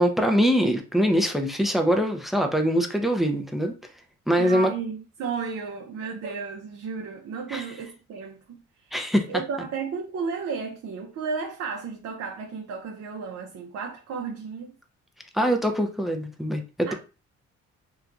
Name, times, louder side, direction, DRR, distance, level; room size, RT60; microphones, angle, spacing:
voice 1, 0.0-3.7 4.3-4.7 7.5-7.6 8.9-9.3 15.3-16.9, equal, ahead, 0.4 m, -23 dB
voice 2, 4.4-9.0 9.3-14.7 16.9-17.0, right 5 dB, 55° right, 0.5 m, -33 dB
2.8 x 2.3 x 2.4 m
cardioid pair, 90°, 30 cm